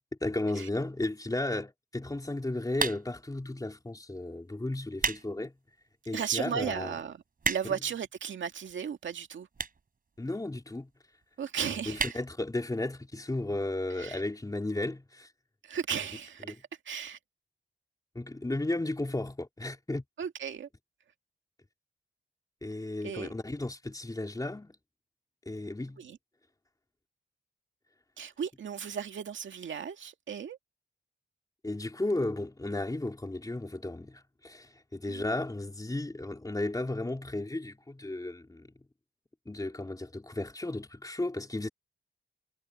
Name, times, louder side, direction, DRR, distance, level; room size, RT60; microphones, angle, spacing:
voice 1, 0.2-5.5 6.1-6.9 7.7-7.8 10.2-10.9 11.9-15.3 16.4-16.6 18.1-20.0 22.6-24.8 25.5-26.0 31.6-38.7 39.5-41.7, left 2 dB, 20° left, 3.9 m, -34 dB
sound 1, 2.7-3.3 4.0-4.2 4.7-5.3 5.7-5.8 6.4-6.5 6.7-6.8 7.0-7.9 8.7-8.8 9.5-9.9 10.2-10.3 10.5-10.6 10.8-10.9 11.2-11.4 11.9-12.2 12.6-12.7 12.9-13.0, right 4 dB, 50° right, 4.6 m, -31 dB
voice 2, 6.1-9.5 11.4-12.2 14.0-14.2 15.6-16.6 16.9-17.2 20.2-20.7 23.0-23.3 26.0-26.2 28.2-30.6 35.1-35.3, right 7 dB, 80° right, 2.1 m, -35 dB
cardioid pair, 80°, 19 cm